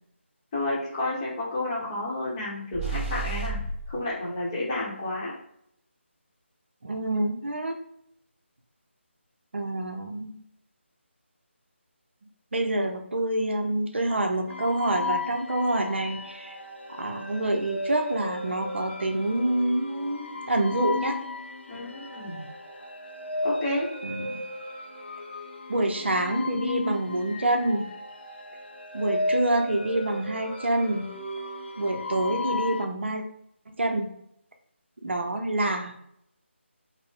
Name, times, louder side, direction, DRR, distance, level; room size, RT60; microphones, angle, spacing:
voice 1, 0.5-3.6 3.9-5.3 21.7-22.4 23.4-23.9, left 1 dB, 20° left, -5 dB, 0.9 m, -30 dB
sound 1, 2.7-4.0, right 3 dB, 5° right, 0.6 m, -31 dB
voice 2, 6.8-7.8 9.5-10.4 12.5-16.6 16.9-21.2 24.0-24.4 25.7-27.9 28.9-31.1 31.8-33.2 33.8-34.1 35.0-35.9, right 1 dB, 60° right, 4 dB, 0.5 m, -27 dB
sound 2, 14.5-32.8, left 2 dB, 60° left, 0.7 m, -35 dB
3.7 x 2.0 x 3.5 m, 0.72 s
figure-of-eight pair, 155°, 7 cm